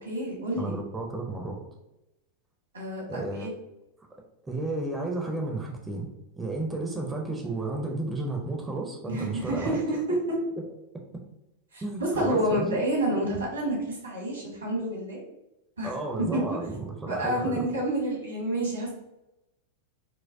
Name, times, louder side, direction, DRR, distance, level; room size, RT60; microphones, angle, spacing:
voice 1, 0.0-0.8 2.7-3.5 9.1-10.2 11.7-15.2 15.8-15.9 16.3-16.6 17.1-18.9, right 1 dB, 75° right, -3 dB, 1.4 m, -29 dB
voice 2, 0.6-1.6 3.1-3.5 4.4-6.1 6.4-9.8 11.8-12.8 15.8-17.6, right 2 dB, 10° right, 0 dB, 0.5 m, -32 dB
4.5 x 2.1 x 2.6 m, 0.92 s
figure-of-eight pair, 90°, 0 cm